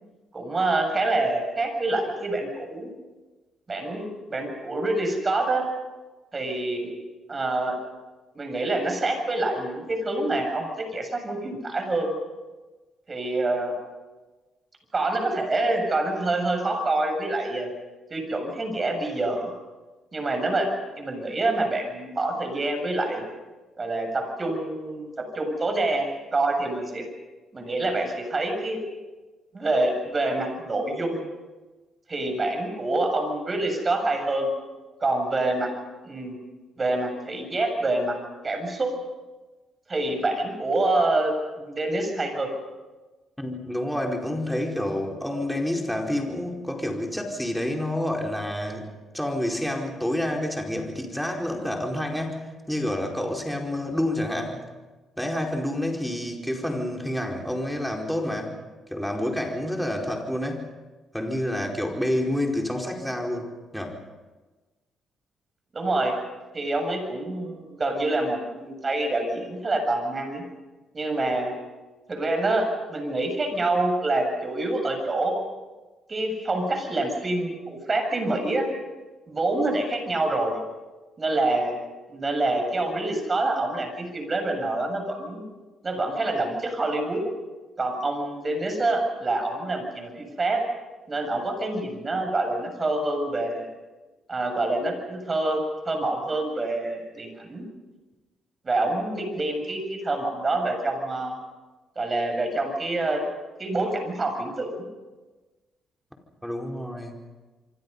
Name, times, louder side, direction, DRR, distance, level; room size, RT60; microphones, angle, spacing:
voice 1, 0.3-2.9 3.7-5.7 6.3-6.9 7.3-7.8 8.3-12.1 13.1-13.8 14.9-17.7 18.1-19.5 20.1-20.7 21.0-23.2 23.8-27.0 27.5-28.8 29.5-31.2 32.1-34.5 35.0-35.7 36.0-36.3 36.8-38.2 38.4-38.9 39.9-42.5 65.7-66.2 66.5-70.4 70.9-71.5 72.1-75.4 76.1-78.7 79.3-80.6 81.2-81.7 82.1-85.4 85.8-87.2 87.8-90.6 91.1-93.6 94.3-97.7 98.6-101.3 102.0-103.2 103.6-104.9, right 2 dB, 30° right, 5 dB, 7.5 m, -26 dB
voice 2, 43.4-48.9 49.1-54.6 55.2-58.6 58.9-60.6 61.1-64.0 106.4-107.2, left 1 dB, ahead, 1 dB, 4.7 m, -28 dB
27.0 x 24.5 x 5.6 m, 1.2 s
cardioid pair, 90°, 0 cm